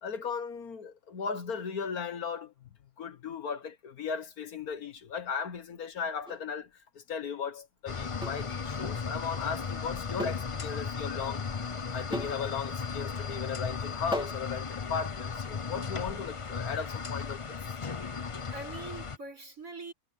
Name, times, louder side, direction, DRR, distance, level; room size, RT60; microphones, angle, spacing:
voice 1, 0.0-2.5 3.0-6.7 6.9-11.5 11.9-17.6, left 6 dB, 65° left, 1.7 m, -36 dB
sound 1, 6.3-6.5 8.2-8.5 10.2-10.5 10.8-10.9 12.1-12.4 14.1-14.5, equal, 5° right, 3.0 m, -36 dB
sound 2, 7.9-19.2, left 5 dB, 40° left, 0.4 m, -36 dB
voice 2, 16.0-16.3 18.5-19.9, right 3 dB, 55° right, 7.9 m, -43 dB
omnidirectional pair, 1.7 m